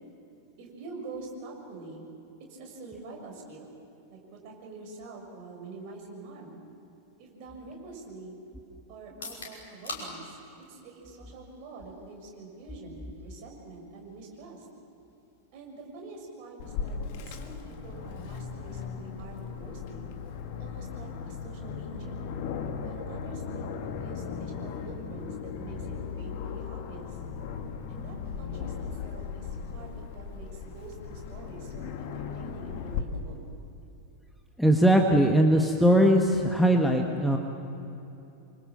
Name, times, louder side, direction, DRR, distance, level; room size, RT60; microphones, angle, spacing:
voice 1, 0.6-2.0 2.4-3.7 4.1-6.6 7.2-8.3 8.9-10.4 10.7-14.7 15.5-17.0 17.2-20.1 20.6-22.2 22.8-27.2 27.9-33.5, right 3 dB, 45° right, 0 dB, 6.8 m, -45 dB
sound 1, 9.0-22.9, left 3 dB, 65° left, 5.7 m, -50 dB
Aircraft, 16.6-33.0, left 6 dB, 50° left, 1.9 m, -37 dB
voice 2, 34.6-37.4, right 1 dB, ahead, 2 dB, 1.6 m, -20 dB
27.0 x 25.0 x 7.5 m, 2.9 s
figure-of-eight pair, 90°, 0 cm